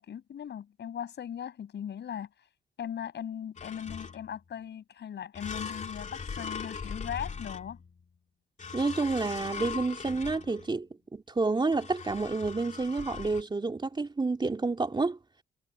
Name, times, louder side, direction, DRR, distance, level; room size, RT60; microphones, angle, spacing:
voice 1, 0.0-2.3 2.8-7.8, left 9 dB, 60° left, 6.6 m, -38 dB
sound 1, 3.6-4.4 5.4-8.0 8.6-10.8 11.7-13.4, left 5 dB, 35° left, 2.9 m, -40 dB
voice 2, 8.7-15.2, right 3 dB, 25° right, 3.0 m, -29 dB
cardioid pair, 90°, 20 cm